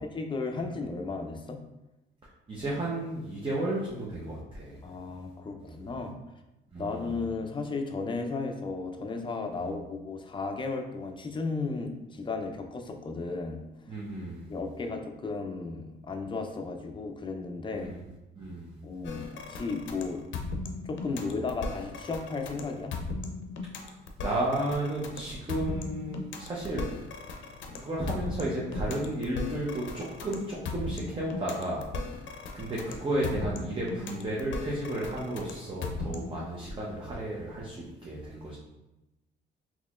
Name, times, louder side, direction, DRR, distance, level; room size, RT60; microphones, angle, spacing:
voice 1, 0.0-1.6 4.8-6.2 6.8-13.6 14.5-17.9 18.8-20.2 20.8-22.9, left 3 dB, 25° left, 4 dB, 0.5 m, -34 dB
voice 2, 2.5-4.8 5.6-5.8 6.7-7.1 9.6-9.8 13.9-14.5 17.7-18.0 18.3-18.8 21.1-21.2 23.8-26.8 27.7-31.9 32.5-38.6, right 1 dB, 25° right, -5 dB, 0.8 m, -33 dB
sound 1, 19.0-36.4, left 3 dB, 70° left, 0.5 m, -37 dB
4.0 x 3.0 x 2.4 m, 0.99 s
cardioid pair, 90°, 20 cm